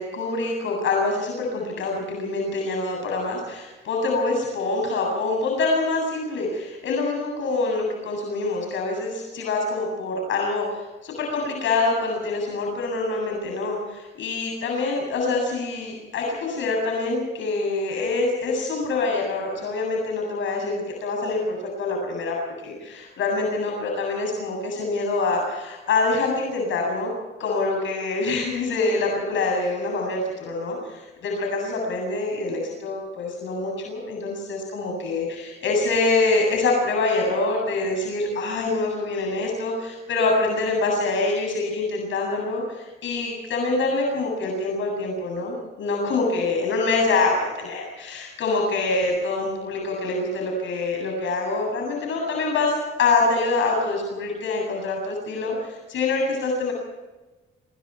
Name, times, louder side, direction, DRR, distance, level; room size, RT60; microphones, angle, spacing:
voice 1, 0.0-22.3 22.6-27.1 27.4-56.7, left 3 dB, 75° left, 0 dB, 7.9 m, -25 dB
27.5 x 20.5 x 4.7 m, 1.2 s
cardioid pair, 90°, 20 cm